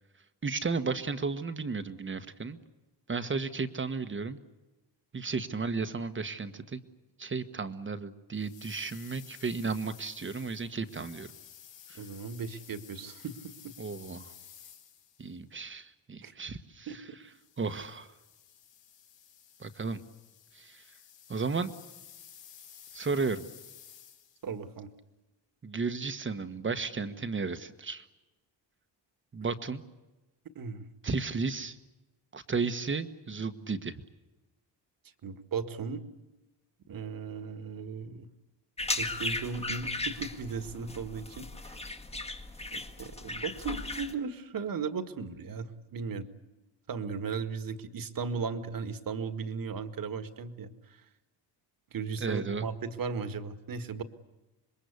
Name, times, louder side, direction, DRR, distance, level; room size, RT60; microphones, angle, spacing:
voice 1, 0.4-2.6 3.1-4.4 5.1-6.8 7.2-11.3 11.9-12.0 13.8-14.3 15.2-17.0 17.6-18.1 19.6-20.0 20.5-20.8 21.3-21.7 22.9-23.4 25.6-28.0 29.3-29.8 31.0-31.8 32.3-34.0 52.2-52.6, right 4 dB, 25° right, 10 dB, 1.4 m, -34 dB
sound 1, 8.3-15.4 17.3-24.5, left 9 dB, 80° left, 3.6 m, -53 dB
voice 2, 12.0-13.4 13.6-13.7 16.2-16.3 16.9-17.0 24.4-24.9 30.6-30.9 35.2-36.0 36.9-38.3 39.0-41.9 42.7-46.3 46.9-50.7 51.9-54.0, right 5 dB, 50° right, 10 dB, 2.0 m, -36 dB
sound 2, 38.8-44.1, left 2 dB, 15° left, 1.7 m, -36 dB
27.0 x 22.0 x 8.3 m, 1.1 s
cardioid pair, 125°, 44 cm